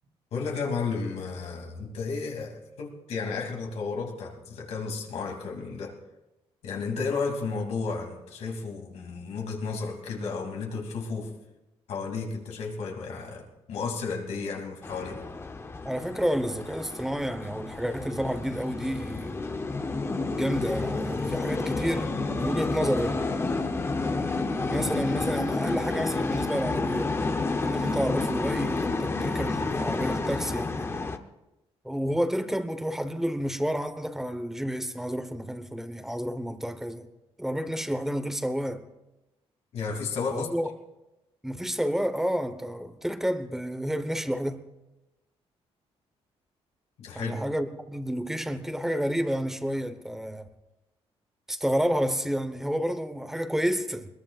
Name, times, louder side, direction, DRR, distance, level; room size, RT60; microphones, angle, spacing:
voice 1, 0.3-6.0 6.6-11.3 11.9-15.2 39.7-40.5 47.0-47.4, left 4 dB, 75° left, 2.8 m, -33 dB
sound 1, 14.8-31.2, left 3 dB, 25° left, 0.8 m, -30 dB
voice 2, 15.8-19.4 20.3-23.2 24.7-27.2 27.6-30.9 31.8-37.1 37.4-38.8 40.3-40.7 41.4-44.7 47.1-50.5 51.5-54.1, equal, 5° right, 1.1 m, -30 dB
21.5 x 21.0 x 2.5 m
cardioid pair, 125°, 11 cm